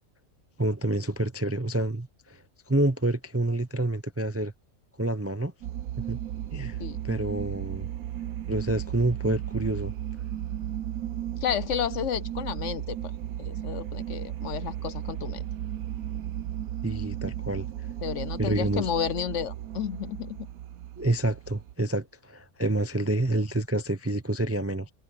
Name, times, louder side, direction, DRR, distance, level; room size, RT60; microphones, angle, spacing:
voice 1, 0.6-4.5 5.0-5.5 6.0-6.2 6.5-7.9 8.5-9.9 16.8-17.7 18.4-18.9 21.0-24.9, right 1 dB, 20° right, 0.4 m, -28 dB
sound 1, 5.6-21.7, right 12 dB, 80° right, 1.1 m, -35 dB
voice 2, 11.4-13.0 13.4-15.4 18.0-20.4, left 9 dB, 65° left, 0.9 m, -31 dB
omnidirectional pair, 1.5 m